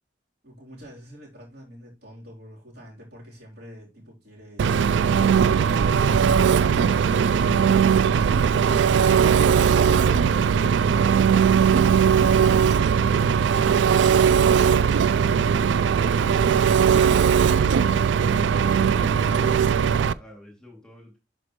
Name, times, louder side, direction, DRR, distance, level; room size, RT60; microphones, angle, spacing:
voice 1, 0.4-6.4, equal, 60° right, 3.7 m, -45 dB
Engine, 4.6-20.1, right 7 dB, 80° right, 0.3 m, -19 dB
voice 2, 7.2-7.7 18.4-21.2, left 1 dB, 5° left, 2.6 m, -45 dB
11.5 x 5.1 x 3.1 m
head